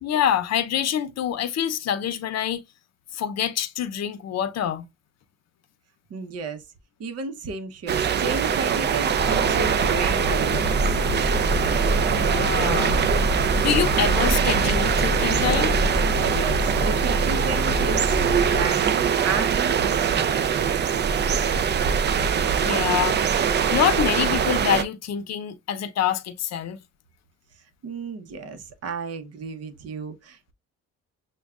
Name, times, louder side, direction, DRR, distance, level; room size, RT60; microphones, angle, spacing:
voice 1, 0.0-2.6 3.1-4.9 12.0-13.0 13.6-15.8 22.6-23.2 23.7-26.8, left 9 dB, 60° left, 0.6 m, -26 dB
voice 2, 6.1-6.6 7.0-10.7 16.2-21.1 27.8-30.5, right 4 dB, 55° right, 0.8 m, -33 dB
sound 1, 7.9-24.8, right 7 dB, 35° right, 0.4 m, -22 dB
sound 2, 9.2-18.7, left 2 dB, 10° left, 0.6 m, -28 dB
6.2 x 2.3 x 2.3 m
cardioid pair, 90°, 30 cm